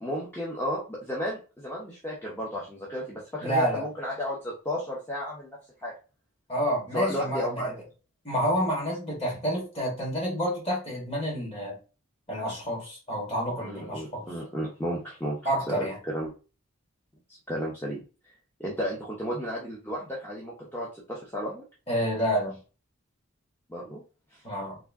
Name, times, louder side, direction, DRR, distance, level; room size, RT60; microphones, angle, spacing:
voice 1, 0.0-5.9 6.9-7.8 13.6-15.4 15.7-16.3 17.3-18.0 18.6-21.6 23.7-24.0 24.3-24.4, equal, 10° left, 0.7 m, -33 dB
voice 2, 3.4-3.8 6.5-7.8 8.2-11.8 12.3-14.2 15.4-16.0 21.9-22.6 24.4-24.8, equal, 25° left, 1.8 m, -29 dB
3.5 x 2.6 x 3.5 m
head